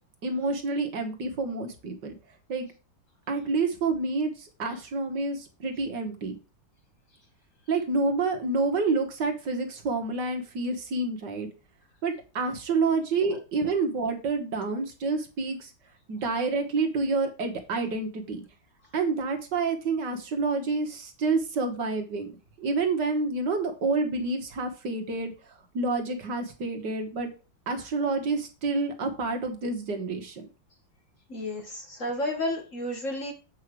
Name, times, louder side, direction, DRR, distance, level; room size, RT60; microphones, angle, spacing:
voice 1, 0.2-2.1 2.5-2.7 3.3-6.4 7.7-11.5 12.0-15.7 16.1-18.4 18.9-22.3 22.6-25.3 25.7-27.3 27.7-30.4, right 3 dB, 60° right, 4 dB, 1.8 m, -28 dB
voice 2, 31.3-33.3, left 1 dB, 40° left, 3 dB, 1.7 m, -32 dB
7.8 x 5.7 x 4.7 m, 0.32 s
omnidirectional pair, 2.2 m